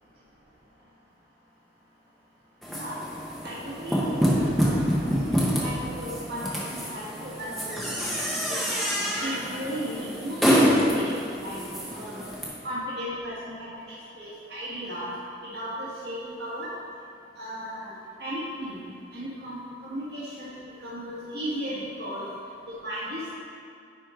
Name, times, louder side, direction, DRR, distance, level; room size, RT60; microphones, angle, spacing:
sound 1, 2.6-12.4, equal, ahead, 1.1 m, -26 dB
voice 1, 3.4-4.8 5.3-6.4 6.9-8.2 8.5-8.6 9.2-11.6 11.9-12.2 12.6-13.7 14.2-15.1 15.5-16.7 17.4-17.9 18.2-18.8 19.1-20.5 20.8-22.3 22.7-23.3, equal, 60° right, -8 dB, 1.6 m, -35 dB
9.6 x 4.4 x 5.0 m, 2.3 s
head